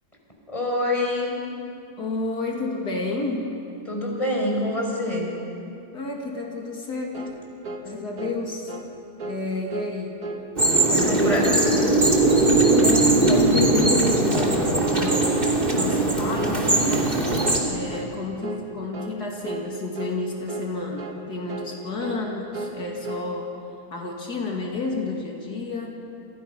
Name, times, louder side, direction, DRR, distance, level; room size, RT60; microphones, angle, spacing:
voice 1, 0.5-1.4 3.9-5.3 11.0-11.8, left 1 dB, 20° left, -1 dB, 5.5 m, -26 dB
voice 2, 2.0-3.6 5.9-7.3 7.8-8.7 9.2-10.2 10.9-12.1 12.8-17.2 17.6-23.5 23.9-26.0, left 3 dB, 75° left, 0 dB, 3.0 m, -31 dB
sound 1, 7.1-7.4 7.6-7.9 8.2-8.4 8.7-8.9 9.2-9.4 9.7-9.9 10.2-10.4 10.7-11.0 11.2-11.5 11.7-12.0 12.3-12.5 12.8-13.0 13.3-13.5 13.8-14.0 14.3-14.6 14.8-15.0 15.3-15.6 15.8-16.1 16.4-16.6 16.9-17.1 17.4-17.6 17.9-18.1 18.4-18.6 18.9-19.2 19.4-19.7 20.0-20.2 20.5-20.7 21.0-21.2 21.5-21.7 22.0-22.2 22.5-22.8 23.0-23.3, right 2 dB, 65° right, 2.2 m, -35 dB
sound 2, 10.6-17.6, right 2 dB, 30° right, 3.2 m, -20 dB
29.0 x 29.0 x 5.9 m, 2.6 s
omnidirectional pair, 1.7 m